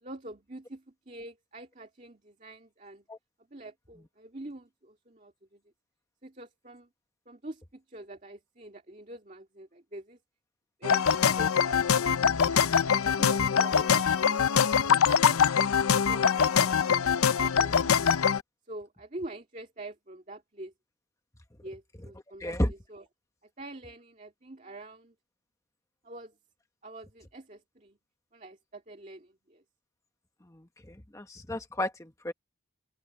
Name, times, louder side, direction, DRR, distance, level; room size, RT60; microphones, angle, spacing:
voice 1, 0.0-3.0 3.5-5.6 6.2-6.9 7.3-10.2 10.8-11.1 11.3-12.1 12.5-12.7 13.0-14.4 14.9-15.7 16.1-16.8 17.4-18.1 18.7-20.7 21.6-23.0 23.4-25.1 26.0-26.4 26.8-28.0 28.3-29.6, right 1 dB, 35° right, 2.3 m, -45 dB
sound 1, 10.8-18.4, left 7 dB, 85° left, 0.6 m, -23 dB
voice 2, 22.4-22.7 30.4-32.3, left 1 dB, 15° left, 1.0 m, -32 dB
open air
head